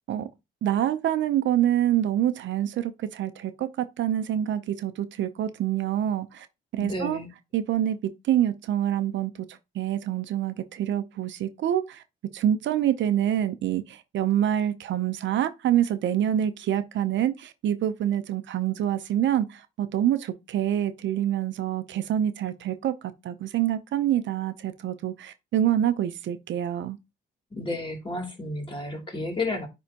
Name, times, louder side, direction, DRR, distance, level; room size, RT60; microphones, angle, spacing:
voice 1, 0.6-6.5 6.7-7.2 7.5-12.0 12.3-27.0, right 11 dB, 70° right, 0.7 m, -26 dB
voice 2, 6.8-7.3 27.5-29.7, left 2 dB, 25° left, 2.8 m, -31 dB
9.4 x 3.5 x 2.9 m
cardioid pair, 90°, 20 cm